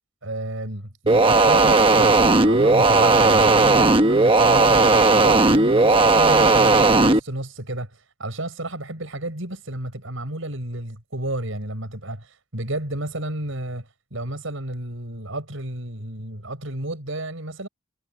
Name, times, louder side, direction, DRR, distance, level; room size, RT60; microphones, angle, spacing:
voice 1, 0.2-7.9 8.2-17.7, right 1 dB, 90° right, 5.6 m, -31 dB
sound 1, 1.1-7.2, right 3 dB, 25° right, 1.1 m, -16 dB
head